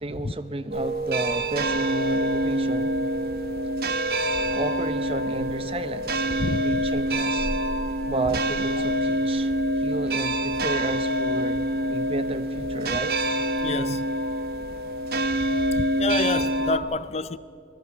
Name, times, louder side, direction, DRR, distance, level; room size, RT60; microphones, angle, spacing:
voice 1, 0.0-2.9 4.5-6.3 6.6-7.5 8.1-13.2, right 2 dB, 30° right, 0.8 m, -32 dB
sound 1, 0.7-16.8, right 1 dB, 55° right, 1.2 m, -26 dB
voice 2, 13.6-14.1 15.7-17.4, left 3 dB, 35° left, 0.5 m, -28 dB
26.0 x 18.0 x 6.1 m
head